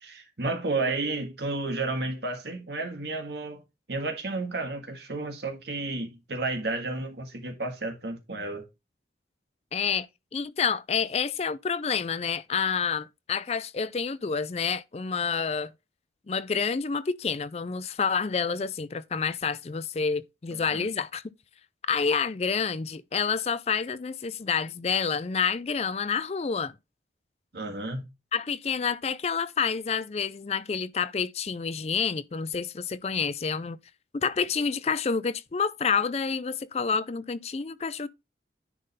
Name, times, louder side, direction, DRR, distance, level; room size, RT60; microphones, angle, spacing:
voice 1, 0.0-3.6 3.9-8.7 20.5-20.9 27.5-28.0, right 2 dB, 70° right, 1.7 m, -32 dB
voice 2, 9.7-10.1 10.3-15.7 16.3-21.2 21.9-26.7 28.3-33.8 34.1-38.1, left 6 dB, 35° left, 0.4 m, -28 dB
10.0 x 3.8 x 4.1 m
head